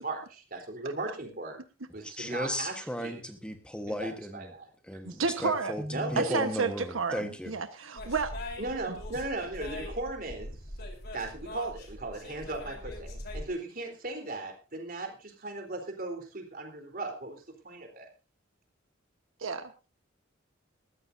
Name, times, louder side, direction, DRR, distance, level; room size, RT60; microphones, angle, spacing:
voice 1, 0.0-1.6 1.9-3.2 3.9-4.7 5.1-5.2 5.9-6.4 8.6-10.6 11.1-18.1, right 2 dB, 45° right, 3 dB, 3.8 m, -37 dB
voice 2, 2.0-4.5 4.9-7.5, equal, 5° left, 6 dB, 1.3 m, -35 dB
voice 3, 5.0-5.8 6.2-8.3 19.4-19.9, right 4 dB, 90° right, 8 dB, 1.3 m, -31 dB
sound 1, 8.0-13.4, left 1 dB, 55° left, 4.0 m, -41 dB
20.5 x 14.5 x 2.7 m, 0.30 s
head